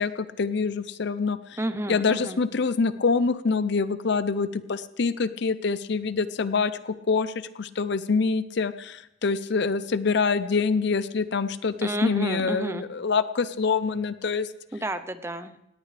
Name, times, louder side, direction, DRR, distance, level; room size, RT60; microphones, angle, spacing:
voice 1, 0.0-1.6 1.9-14.5, left 4 dB, 55° left, 14 dB, 0.5 m, -25 dB
voice 2, 1.6-2.4 11.8-12.8 14.7-15.5, right 1 dB, 10° right, 11 dB, 0.7 m, -30 dB
18.0 x 18.0 x 3.3 m, 0.84 s
head